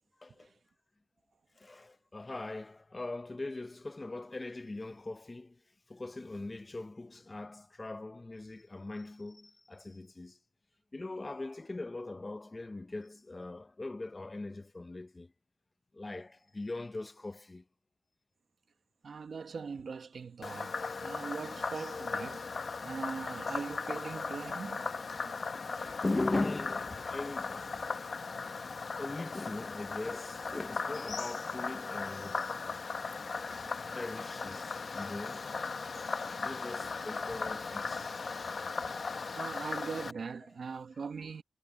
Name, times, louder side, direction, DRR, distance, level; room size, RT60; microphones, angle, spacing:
voice 1, 0.2-0.5 1.6-5.6 5.9-10.4 10.9-15.3 15.9-17.6 25.5-27.9 29.0-32.4 32.7-32.8 33.9-35.5 36.4-38.2 40.2-40.6 40.9-41.0, left 2 dB, 25° left, 0.9 m, -40 dB
voice 2, 19.0-20.7 21.0-22.4 22.8-24.8 39.4-41.4, right 5 dB, 65° right, 1.1 m, -41 dB
Frog, 20.4-40.1, left 4 dB, 55° left, 1.2 m, -38 dB
cardioid pair, 80°, 0 cm